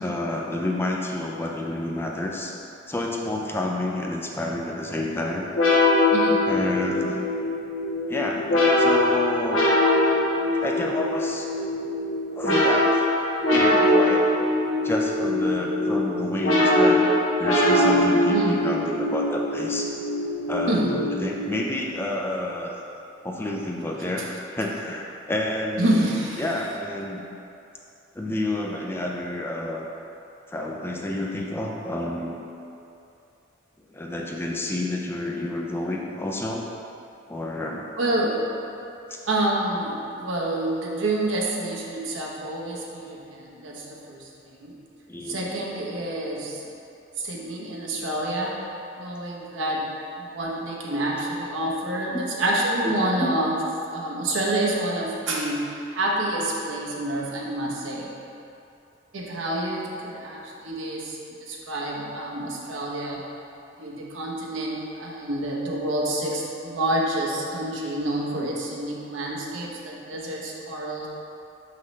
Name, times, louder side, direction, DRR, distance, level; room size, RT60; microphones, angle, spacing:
voice 1, 0.0-2.5 2.9-5.4 6.5-7.3 8.1-9.6 10.6-11.5 12.3-13.1 13.5-14.3 14.8-19.9 20.5-22.8 23.2-26.1 26.4-27.2 28.1-29.9 30.5-32.4 33.9-36.6 37.3-37.9 39.1-39.2 45.1-45.5 52.1-52.2 52.8-53.4, left 1 dB, 10° left, -1 dB, 0.4 m, -29 dB
sound 1, 5.5-21.8, left 1 dB, 85° left, 1.2 m, -22 dB
voice 2, 6.1-6.4 18.3-18.6 20.7-21.0 25.8-26.4 38.0-38.4 39.3-44.3 44.6-44.8 45.2-46.6 47.2-48.5 49.0-49.9 50.2-53.6 53.9-58.2 59.1-63.2 63.8-71.1, right 1 dB, 75° right, -3 dB, 1.0 m, -28 dB
6.2 x 5.7 x 3.2 m, 2.8 s
head